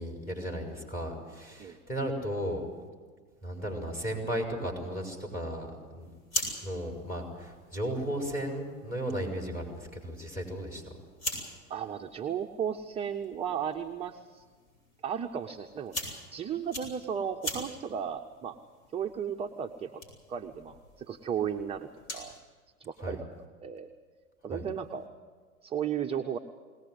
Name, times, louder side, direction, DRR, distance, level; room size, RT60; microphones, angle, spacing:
voice 1, 0.0-2.7 3.4-5.7 5.9-6.1 6.6-10.8 23.0-23.2 24.5-24.6, equal, 20° left, 2 dB, 6.0 m, -35 dB
sound 1, 6.0-22.4, equal, 60° left, 7.3 m, -43 dB
voice 2, 11.7-14.4 15.0-18.6 18.9-20.0 20.3-22.4 22.8-23.3 23.6-23.9 24.4-25.1 25.6-26.4, right 8 dB, 15° right, 4 dB, 0.6 m, -35 dB
21.5 x 18.5 x 8.1 m, 1.6 s
figure-of-eight pair, 100°, 45 cm